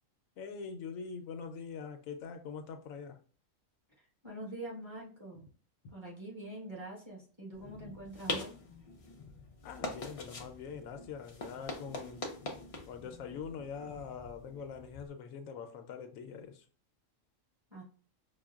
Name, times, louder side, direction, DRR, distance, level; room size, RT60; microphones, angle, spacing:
voice 1, 0.4-3.2 9.6-12.2 12.9-16.6, left 6 dB, 85° left, 1.0 m, -43 dB
voice 2, 4.0-5.5 5.9-8.5 17.7-17.8, right 1 dB, 20° right, 1.2 m, -45 dB
sound 1, 7.5-15.1, left 3 dB, 65° left, 0.3 m, -43 dB
5.6 x 2.1 x 2.3 m
omnidirectional pair, 1.4 m